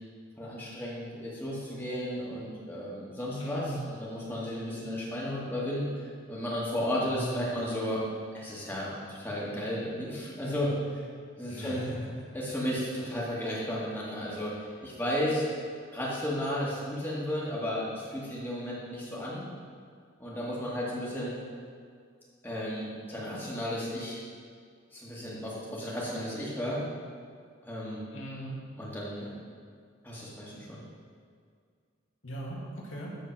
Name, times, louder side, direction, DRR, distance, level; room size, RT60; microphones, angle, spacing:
voice 1, 0.4-8.0 8.3-11.0 11.4-11.8 12.3-15.4 15.9-19.5 20.2-21.3 22.4-24.2 24.9-26.8 27.6-28.0 28.8-29.4 30.0-30.8, equal, 10° left, -7 dB, 2.0 m, -34 dB
voice 2, 3.4-3.9 7.1-7.5 11.5-12.1 28.1-28.6 32.2-33.1, equal, 85° left, -4 dB, 2.1 m, -38 dB
13.0 x 4.5 x 6.0 m, 2.1 s
head